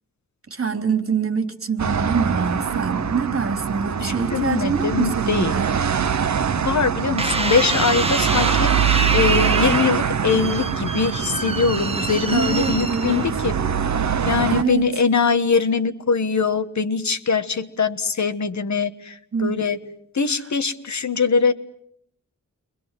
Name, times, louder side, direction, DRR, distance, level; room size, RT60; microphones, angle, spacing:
voice 1, 0.5-5.7 12.3-13.4 14.5-14.9 19.3-19.6, right 5 dB, 45° right, 3.4 m, -25 dB
sound 1, 1.8-14.6, right 7 dB, 65° right, 1.1 m, -24 dB
voice 2, 4.0-5.6 6.6-13.6 14.2-19.8 20.1-21.5, left 5 dB, 65° left, 1.5 m, -22 dB
sound 2, 7.2-13.6 14.2-14.7, right 3 dB, 20° right, 1.7 m, -26 dB
29.5 x 24.0 x 7.6 m
wide cardioid pair, 130°, 31 cm